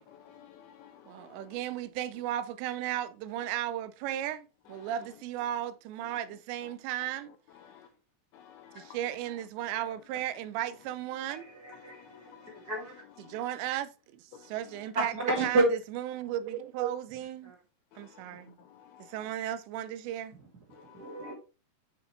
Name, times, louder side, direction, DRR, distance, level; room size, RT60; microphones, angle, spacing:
voice 1, 0.1-1.4 4.8-4.9 7.6-7.9 8.3-9.0 11.8-12.7 13.2-13.3 14.3-14.5 17.9-18.2 18.7-19.1 20.7-21.2, left 9 dB, 90° left, 2.2 m, -54 dB
voice 2, 1.4-4.4 4.7-7.2 8.9-11.4 13.3-13.9 14.5-15.1 15.4-15.6 15.9-17.4 19.1-20.3, right 12 dB, 90° right, 2.9 m, -34 dB
voice 3, 11.3-13.0 14.9-15.7 17.4-17.5 20.7-21.3, right 2 dB, 35° right, 1.5 m, -31 dB
8.5 x 5.2 x 3.2 m
omnidirectional pair, 5.0 m